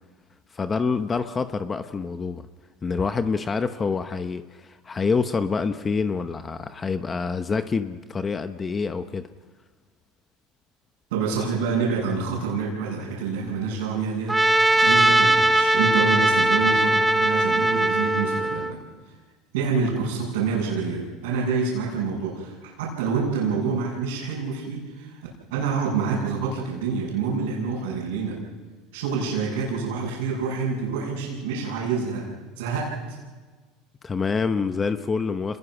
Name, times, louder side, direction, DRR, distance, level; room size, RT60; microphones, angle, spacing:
voice 1, 0.5-2.4 2.8-9.3 34.0-35.6, left 5 dB, 25° left, 10 dB, 0.8 m, -26 dB
voice 2, 11.1-18.8 19.5-25.2 25.5-28.4 28.9-32.3 32.6-33.2, right 5 dB, 90° right, -6 dB, 6.7 m, -27 dB
Trumpet, 14.3-18.7, right 1 dB, 5° right, 1.0 m, -20 dB
27.5 x 21.0 x 6.1 m, 1.4 s
supercardioid pair, 115°, 0 cm